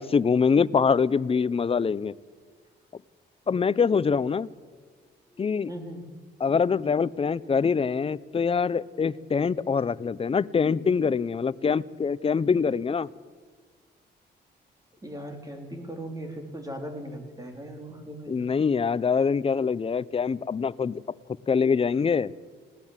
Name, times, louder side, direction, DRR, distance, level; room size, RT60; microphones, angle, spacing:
voice 1, 0.0-2.1 3.5-4.5 5.4-5.7 6.4-13.1 18.3-21.0 21.5-22.3, left 5 dB, 30° left, 19 dB, 0.6 m, -24 dB
voice 2, 5.7-6.0 15.0-18.4, right 1 dB, 20° right, 5 dB, 3.7 m, -38 dB
21.0 x 16.5 x 7.4 m, 1.5 s
cardioid pair, 85°, 19 cm